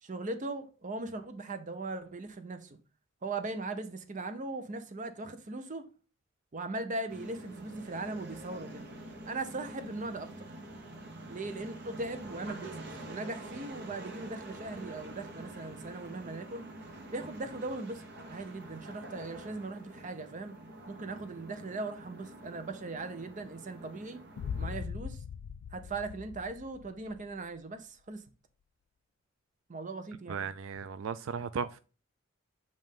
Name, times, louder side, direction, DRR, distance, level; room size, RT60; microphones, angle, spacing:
voice 1, 0.0-2.8 3.2-5.9 6.5-8.9 9.3-10.5 11.3-16.6 17.1-20.5 20.9-24.2 24.6-25.2 25.7-28.2 29.7-30.4, right 2 dB, 40° right, 0.7 m, -39 dB
sound 1, 7.1-24.8, right 1 dB, 55° right, 1.0 m, -47 dB
Boom, 24.4-27.3, left 6 dB, 75° left, 0.3 m, -40 dB
voice 2, 30.3-31.8, right 6 dB, 80° right, 0.3 m, -36 dB
7.5 x 2.6 x 5.2 m
head